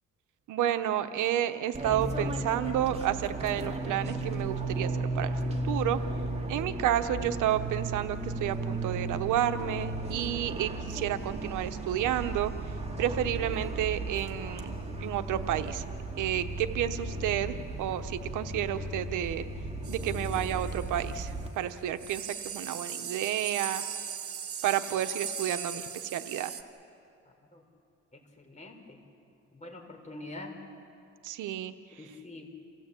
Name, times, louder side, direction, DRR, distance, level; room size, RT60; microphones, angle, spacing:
voice 1, 0.5-5.4 5.6-6.0 6.5-12.5 13.0-15.8 16.2-19.4 19.9-23.8 24.6-26.5 31.2-32.1, right 11 dB, 85° right, 10 dB, 1.0 m, -31 dB
Fixed-wing aircraft airplane, 1.7-21.5, right 2 dB, 20° right, 2.5 m, -35 dB
sound 1, 19.8-21.3 21.7-21.8 22.0-26.6, right 7 dB, 50° right, 1.6 m, -39 dB
voice 2, 28.4-29.0 29.5-30.5 32.0-32.5, left 2 dB, 25° left, 2 dB, 4.2 m, -44 dB
28.5 x 16.5 x 8.4 m, 2.6 s
cardioid pair, 90°, 30 cm